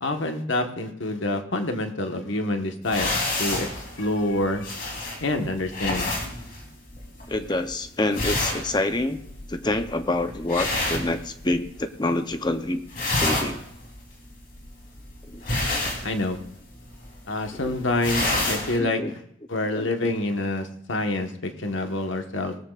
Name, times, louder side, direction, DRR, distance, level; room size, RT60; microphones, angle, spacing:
voice 1, 0.0-4.7 5.2-6.1 16.0-16.4 17.3-19.2 19.5-22.6, left 2 dB, 75° left, 5 dB, 1.4 m, -27 dB
sound 1, 2.8-11.8 12.1-12.5 12.8-18.8, left 2 dB, 45° left, 3.4 m, -29 dB
voice 2, 7.3-9.2 9.5-12.8 13.2-13.6 15.2-15.4 17.6-17.7 18.8-19.1 19.8-20.1, left 2 dB, 20° left, 9 dB, 0.7 m, -27 dB
19.0 x 13.5 x 2.5 m, 0.69 s
head